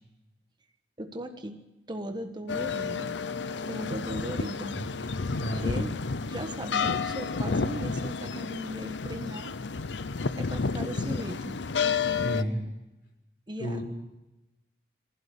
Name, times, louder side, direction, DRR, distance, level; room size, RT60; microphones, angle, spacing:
voice 1, 1.0-1.6 1.9-3.2 3.7-4.8 5.6-5.9 6.3-9.6 10.3-11.6 13.5-13.8, right 1 dB, 25° right, 6 dB, 1.5 m, -37 dB
sound 1, 2.5-12.4, left 5 dB, 80° left, 0.7 m, -31 dB
voice 2, 5.3-5.9 12.2-12.6 13.6-13.8, equal, 60° left, 2 dB, 5.8 m, -32 dB
24.0 x 15.5 x 8.5 m, 1.0 s
head